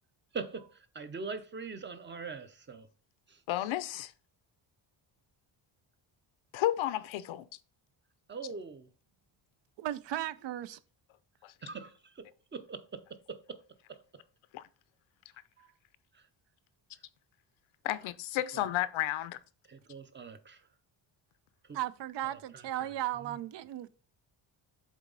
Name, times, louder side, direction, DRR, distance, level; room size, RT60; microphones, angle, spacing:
voice 1, 0.3-0.7 0.9-2.9 3.3-3.4 8.3-8.9 11.6-12.2 12.5-13.6 13.9-14.0 15.6-15.7 18.5-18.6 19.7-20.6, right 4 dB, 25° right, 0.6 m, -42 dB
voice 2, 3.5-4.1 6.5-7.5 11.4-11.5 14.5-14.6 17.8-19.4, left 14 dB, 80° left, 0.7 m, -32 dB
voice 3, 9.8-10.8 21.7-23.9, right 13 dB, 65° right, 0.5 m, -36 dB
7.3 x 4.0 x 3.9 m
cardioid pair, 145°, 47 cm